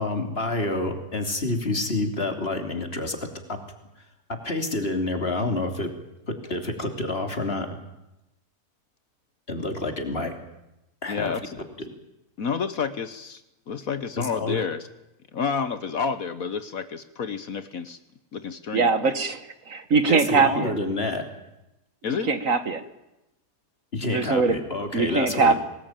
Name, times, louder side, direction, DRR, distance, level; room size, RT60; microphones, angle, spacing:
voice 1, 0.0-3.6 4.0-5.9 6.3-7.8 9.5-10.3 11.0-11.3 14.2-14.6 20.1-21.3 23.9-25.6, left 2 dB, 40° left, 5 dB, 3.2 m, -28 dB
voice 2, 11.1-11.6 12.4-13.4 13.7-14.9 15.3-18.0 18.3-18.9 22.0-22.3, left 6 dB, 60° left, 11 dB, 1.5 m, -29 dB
voice 3, 18.7-19.4 19.7-20.7 22.3-22.8 24.1-24.6 24.9-25.6, right 4 dB, 55° right, 11 dB, 1.8 m, -21 dB
25.0 x 19.5 x 9.1 m, 0.91 s
omnidirectional pair, 1.7 m